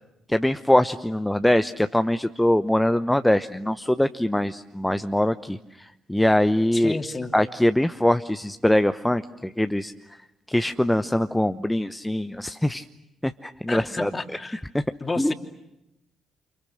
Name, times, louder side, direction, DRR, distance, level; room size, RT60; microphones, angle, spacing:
voice 1, 0.3-7.0 7.3-9.9 10.5-12.8 13.2-14.1 14.7-14.8 15.2-15.3, left 1 dB, 5° left, 11 dB, 0.9 m, -23 dB
voice 2, 6.7-7.3 13.7-14.6 15.0-15.3, left 3 dB, 25° left, 5 dB, 2.9 m, -31 dB
29.5 x 29.5 x 6.5 m, 0.88 s
figure-of-eight pair, 40°, 0 cm